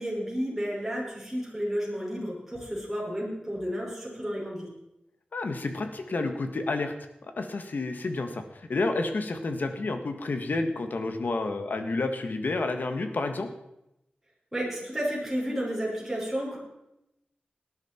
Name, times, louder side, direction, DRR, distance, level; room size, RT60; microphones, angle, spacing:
voice 1, 0.0-4.7 14.5-16.6, equal, 5° right, -5 dB, 5.5 m, -32 dB
voice 2, 5.3-6.9 7.4-13.5, left 3 dB, 70° left, 7 dB, 1.6 m, -30 dB
18.5 x 10.5 x 4.5 m, 0.86 s
wide cardioid pair, 85°, 3 cm